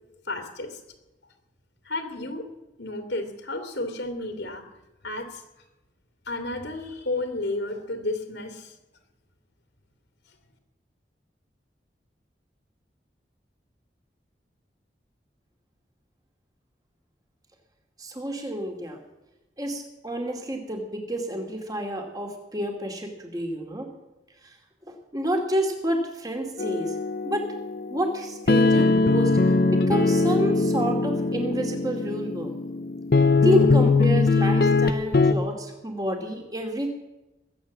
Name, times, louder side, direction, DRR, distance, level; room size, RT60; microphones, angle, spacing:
voice 1, 0.3-0.8 1.8-2.4 2.8-4.6 5.0-5.4 6.3-8.7, left 2 dB, 90° left, 5 dB, 2.5 m, -32 dB
voice 2, 18.0-19.0 19.6-23.9 24.9-26.9 27.2-27.5 27.9-32.5 33.4-36.9, equal, 20° right, 3 dB, 2.5 m, -29 dB
sound 1, 26.6-35.3, left 3 dB, 55° left, 0.7 m, -21 dB
21.0 x 8.9 x 7.3 m, 1.0 s
head